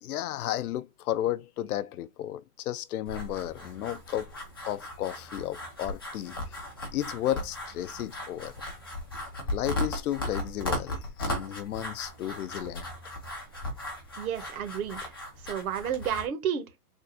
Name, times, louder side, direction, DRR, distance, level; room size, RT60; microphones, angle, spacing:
voice 1, 0.0-4.3 4.7-6.7 6.9-8.5 9.5-12.9, left 12 dB, 75° left, 0.5 m, -33 dB
sound 1, 3.0-16.2, left 1 dB, 20° left, 0.3 m, -37 dB
voice 2, 14.2-15.1 15.4-16.7, right 8 dB, 65° right, 1.1 m, -31 dB
3.5 x 2.4 x 4.1 m
hypercardioid pair, 150°, 46 cm